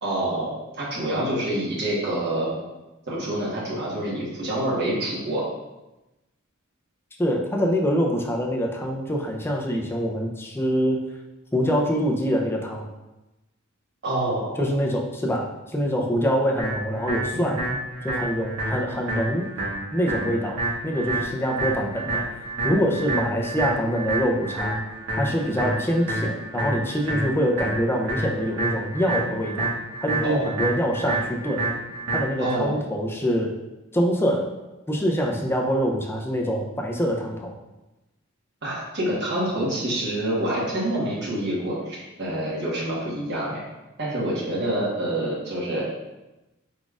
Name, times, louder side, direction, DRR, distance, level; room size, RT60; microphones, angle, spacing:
voice 1, 0.0-2.5 3.1-5.4 14.0-14.7 17.3-17.6 30.2-30.5 32.4-32.8 38.6-43.6 44.0-45.9, right 1 dB, 55° right, -6 dB, 1.3 m, -27 dB
voice 2, 7.2-11.0 11.5-12.9 14.6-17.7 18.0-19.5 19.9-24.8 25.1-29.7 30.0-31.7 32.1-33.6 33.9-34.5 34.9-37.5, equal, 10° left, 0 dB, 0.5 m, -25 dB
sound 1, 16.6-32.6, right 2 dB, 85° right, 1.5 m, -29 dB
4.9 x 3.9 x 2.4 m, 1.0 s
head